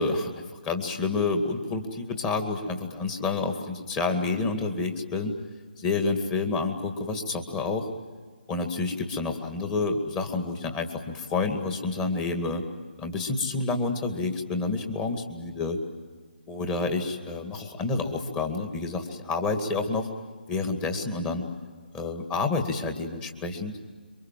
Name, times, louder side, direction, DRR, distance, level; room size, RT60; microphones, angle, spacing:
voice 1, 0.0-5.3 5.8-7.9 8.5-12.6 13.0-15.8 16.5-20.1 20.5-21.5 21.9-23.8, left 3 dB, 15° left, 4 dB, 2.2 m, -29 dB
27.0 x 24.0 x 7.6 m, 1.5 s
figure-of-eight pair, 150°, 6 cm